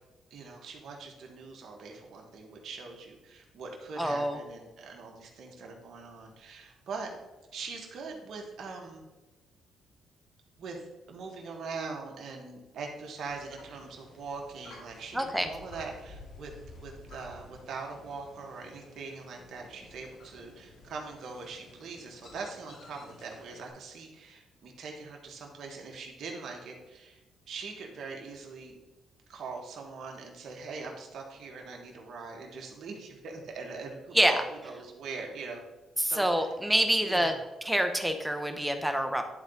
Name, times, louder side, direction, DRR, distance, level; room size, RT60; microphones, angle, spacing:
voice 1, 0.3-7.1 7.5-9.0 10.6-10.8 11.1-27.2 27.5-28.7 29.3-35.6 36.0-36.5 36.9-37.4, right 4 dB, 65° right, 1 dB, 1.5 m, -42 dB
voice 2, 4.0-4.4 15.1-15.5 34.1-34.4 36.0-37.3 37.6-39.2, equal, 5° right, 6 dB, 0.9 m, -26 dB
sound 1, 13.3-23.7, left 2 dB, 70° left, 2.1 m, -52 dB
10.5 x 4.0 x 3.9 m, 1.1 s
cardioid pair, 90°, 0 cm